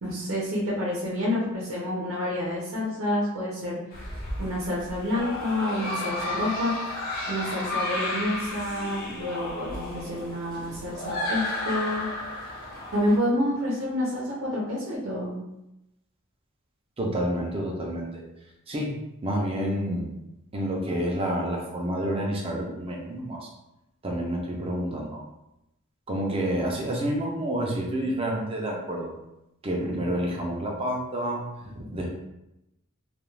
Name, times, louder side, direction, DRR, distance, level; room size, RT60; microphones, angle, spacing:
voice 1, 0.0-3.8 4.4-6.8 7.3-12.1 12.5-15.4 31.8-31.9, left 1 dB, 90° right, -5 dB, 0.7 m, -28 dB
sound 1, 3.9-13.2, left 1 dB, 45° left, 0.7 m, -33 dB
voice 2, 17.0-18.2 18.7-20.1 20.5-23.5 24.0-25.2 26.1-29.1 29.6-31.4 31.9-32.1, right 1 dB, 30° right, -1 dB, 0.5 m, -29 dB
2.4 x 2.3 x 3.2 m, 0.89 s
head